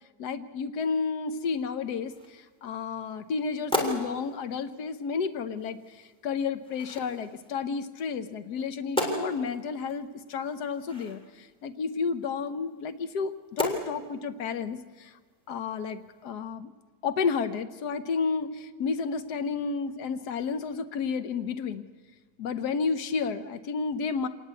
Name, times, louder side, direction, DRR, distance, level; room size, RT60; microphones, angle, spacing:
voice 1, 0.2-15.2 15.5-16.7 17.0-21.9 22.4-24.3, left 5 dB, 70° left, 10 dB, 1.5 m, -31 dB
sound 1, 1.3-16.3, left 1 dB, 5° left, 3.4 m, -38 dB
26.0 x 19.0 x 8.2 m, 1.4 s
omnidirectional pair, 1.9 m